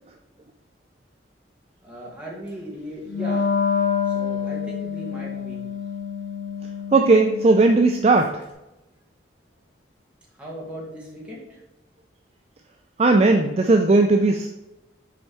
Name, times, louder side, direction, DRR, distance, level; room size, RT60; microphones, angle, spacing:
voice 1, 1.8-3.5 4.0-5.6 10.3-11.6, equal, 5° right, -5 dB, 1.7 m, -37 dB
Wind instrument woodwind instrument, 3.1-8.2, left 6 dB, 65° left, 2.0 m, -27 dB
voice 2, 6.9-8.4 13.0-14.5, right 3 dB, 35° right, 4 dB, 0.4 m, -17 dB
6.4 x 4.4 x 4.6 m, 0.95 s
head